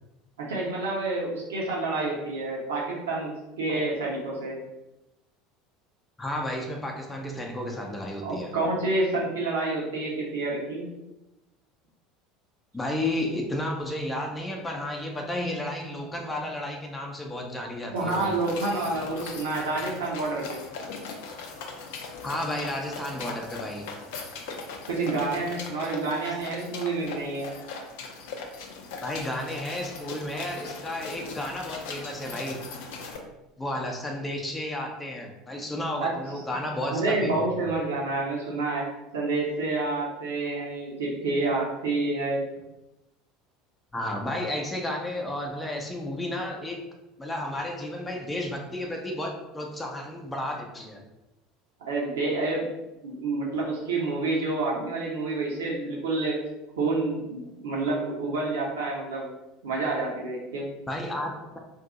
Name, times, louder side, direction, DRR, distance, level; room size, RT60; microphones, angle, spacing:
voice 1, 0.4-3.3 3.6-4.6 8.2-10.8 17.9-20.6 24.9-27.5 36.0-36.1 36.9-38.9 39.1-42.5 51.8-52.7 53.0-56.4 56.8-59.3 59.6-60.7, right 3 dB, 65° right, -4 dB, 0.8 m, -28 dB
voice 2, 6.2-8.5 12.7-18.4 22.2-23.8 29.0-32.6 33.6-37.7 43.9-46.8 47.2-51.0 60.9-61.6, left 1 dB, 10° left, 1 dB, 0.6 m, -32 dB
sound 1, 18.0-33.2, left 4 dB, 60° left, 0.5 m, -40 dB
2.7 x 2.7 x 3.6 m, 0.96 s
figure-of-eight pair, 70°, 0 cm